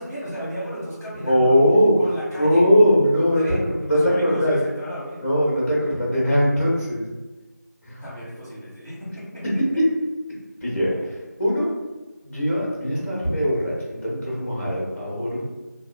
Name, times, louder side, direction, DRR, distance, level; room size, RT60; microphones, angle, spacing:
voice 1, 0.0-1.5 2.0-2.6 3.3-3.6 3.9-5.2 8.0-9.4, equal, 10° right, -18 dB, 1.0 m, -34 dB
voice 2, 1.2-1.9 2.3-4.6 5.2-7.0 7.8-8.0 9.6-9.8 10.6-11.0 11.4-11.7 12.2-15.4, equal, 50° left, -5 dB, 1.0 m, -20 dB
2.6 x 2.4 x 2.2 m, 1.2 s
figure-of-eight pair, 170°, 10 cm